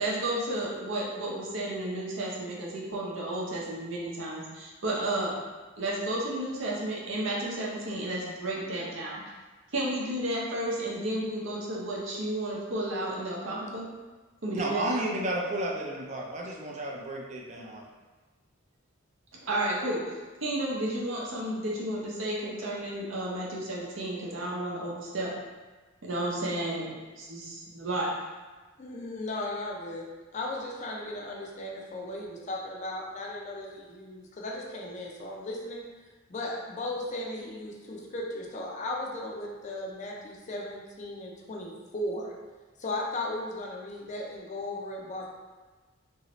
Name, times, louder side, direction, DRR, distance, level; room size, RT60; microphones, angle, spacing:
voice 1, 0.0-5.4 5.8-9.2 9.7-13.9 14.4-14.9 19.4-20.1 20.4-25.4 26.0-28.1, right 1 dB, 70° right, -4 dB, 0.7 m, -32 dB
voice 2, 14.5-17.8, right 1 dB, 35° right, -1 dB, 0.4 m, -32 dB
voice 3, 28.8-35.8 36.3-42.3 42.8-45.3, left 1 dB, 35° left, -1 dB, 0.4 m, -36 dB
2.9 x 2.7 x 3.0 m, 1.3 s
head